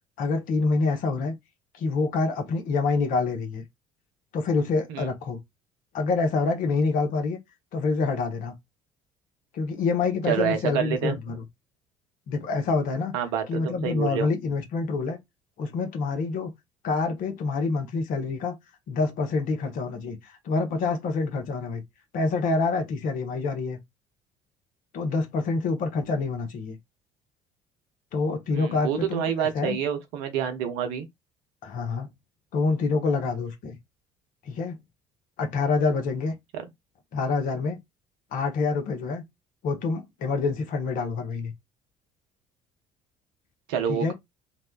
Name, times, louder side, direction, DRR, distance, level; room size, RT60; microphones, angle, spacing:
voice 1, 0.2-1.3 1.7-3.7 4.3-5.4 5.9-7.4 7.7-8.5 9.5-11.4 12.3-13.1 13.5-15.2 15.6-16.5 16.8-18.5 18.9-21.8 22.1-23.8 24.9-26.8 28.1-29.8 31.6-32.1 32.5-33.8 34.4-34.8 35.4-36.3 37.1-37.8 38.3-39.2 39.6-41.5 43.9-44.1, left 4 dB, 55° left, 0.8 m, -26 dB
voice 2, 10.3-11.2 13.1-14.3 28.5-31.0 43.7-44.1, right 8 dB, 65° right, 0.6 m, -28 dB
2.7 x 2.1 x 2.3 m
figure-of-eight pair, 55°, 17 cm